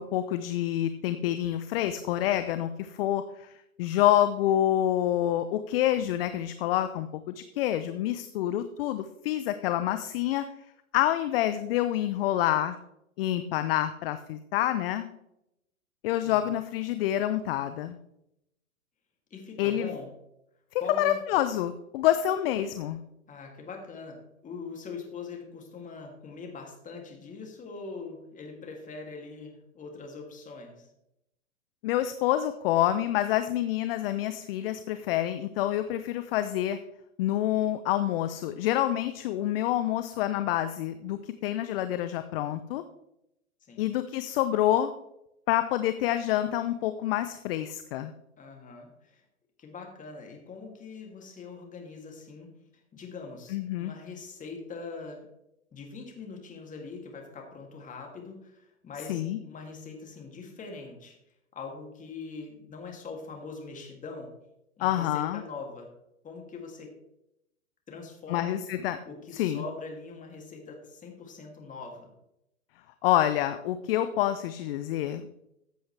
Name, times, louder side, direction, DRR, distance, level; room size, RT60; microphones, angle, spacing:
voice 1, 0.0-3.5 3.8-10.5 10.9-12.8 13.2-15.1 16.0-18.0 19.6-19.9 20.7-23.0 31.8-36.8 37.2-42.8 43.8-44.9 45.5-48.1 53.5-53.9 59.1-59.4 64.8-65.4 68.3-69.0 69.3-69.6 73.0-75.2, left 12 dB, 45° left, 11 dB, 0.7 m, -27 dB
voice 2, 16.2-16.5 19.3-20.1 20.8-21.2 23.3-30.9 43.6-43.9 48.4-49.2 49.6-52.5 52.9-55.3 55.7-61.2 61.5-64.3 64.8-65.9 66.2-66.9 67.9-68.6 69.0-72.1, left 4 dB, 20° left, 1 dB, 2.7 m, -42 dB
14.5 x 7.9 x 3.3 m, 0.83 s
hypercardioid pair, 115°, 42 cm